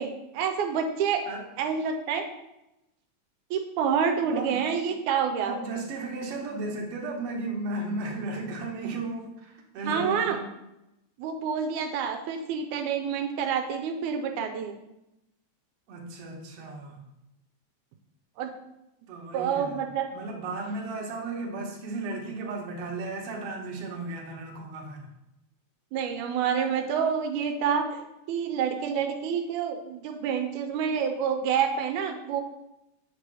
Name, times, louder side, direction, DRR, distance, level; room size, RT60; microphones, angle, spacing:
voice 1, 0.0-1.2 1.6-2.3 3.5-5.5 9.8-10.4 11.2-14.8 18.4-18.5 19.3-20.1 25.9-28.0 28.3-32.4, right 7 dB, 90° right, 5 dB, 2.1 m, -28 dB
voice 2, 4.3-4.7 5.4-10.5 15.9-17.0 19.1-19.8 20.1-25.1, right 3 dB, 60° right, 0 dB, 1.9 m, -35 dB
7.7 x 3.3 x 6.0 m, 0.90 s
omnidirectional pair, 3.4 m